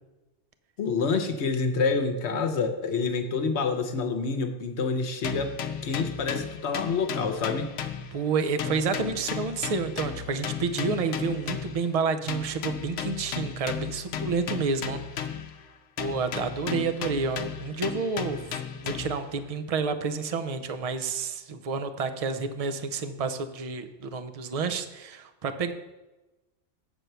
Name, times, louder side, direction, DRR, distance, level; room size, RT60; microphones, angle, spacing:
voice 1, 0.8-5.5 5.8-7.7, left 4 dB, 70° left, 7 dB, 1.1 m, -27 dB
sound 1, 5.2-8.3 8.6-11.9 12.3-15.6 16.0-19.3, left 8 dB, 85° left, 0.9 m, -35 dB
voice 2, 8.1-15.3 16.0-25.7, right 5 dB, 45° right, 9 dB, 0.5 m, -29 dB
8.1 x 4.5 x 6.7 m, 1.1 s
omnidirectional pair, 1.2 m